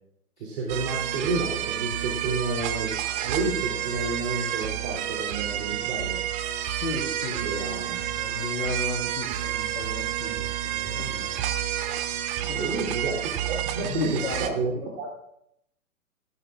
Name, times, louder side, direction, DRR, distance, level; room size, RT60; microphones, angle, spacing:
voice 1, 0.4-2.9 3.2-6.2 7.4-8.0 12.6-15.1, right 3 dB, 50° right, -2 dB, 3.3 m, -30 dB
sound 1, 0.7-14.5, right 11 dB, 15° right, 0.6 m, -30 dB
voice 2, 6.6-11.3 12.5-12.7 13.8-14.7, left 2 dB, 70° left, -4 dB, 3.2 m, -34 dB
19.0 x 16.0 x 2.5 m, 0.77 s
figure-of-eight pair, 120°, 44 cm